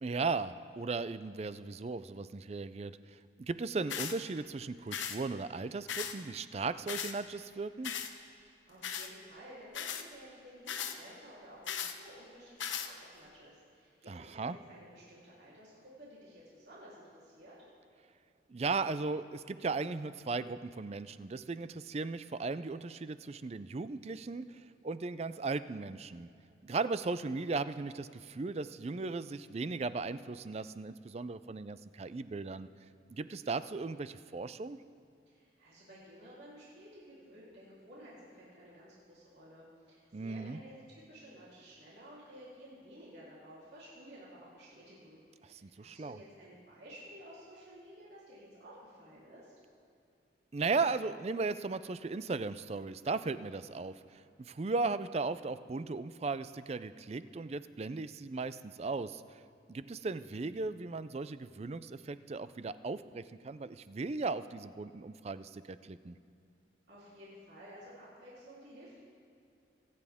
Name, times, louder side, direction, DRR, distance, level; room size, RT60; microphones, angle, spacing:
voice 1, 0.0-7.9 14.1-14.6 18.5-26.3 26.6-32.7 33.1-34.8 40.1-40.6 45.4-46.2 50.5-59.4 59.7-66.2, right 3 dB, 35° right, 14 dB, 0.4 m, -37 dB
sound 1, 3.9-4.2 4.9-5.2 5.9-6.2 6.9-7.1 7.8-8.1 8.8-9.1 9.7-10.0 10.7-11.0 11.7-11.9 12.6-12.9, left 8 dB, 85° left, 0.9 m, -37 dB
voice 2, 8.5-17.6 35.3-45.2 45.5-49.5 66.9-69.0, equal, 65° right, -8 dB, 3.5 m, -53 dB
25.0 x 9.2 x 3.6 m, 2.6 s
head